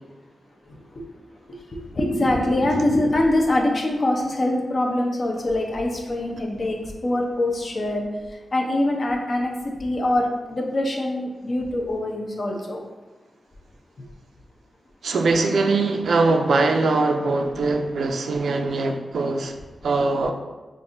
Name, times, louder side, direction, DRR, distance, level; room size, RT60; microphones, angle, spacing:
voice 1, 1.7-8.0 8.5-12.8, left 1 dB, 50° left, 1 dB, 0.6 m, -24 dB
voice 2, 15.0-19.6 19.8-20.3, right 3 dB, 80° right, 4 dB, 0.4 m, -22 dB
5.2 x 2.5 x 2.6 m, 1.2 s
cardioid pair, 80°, 0 cm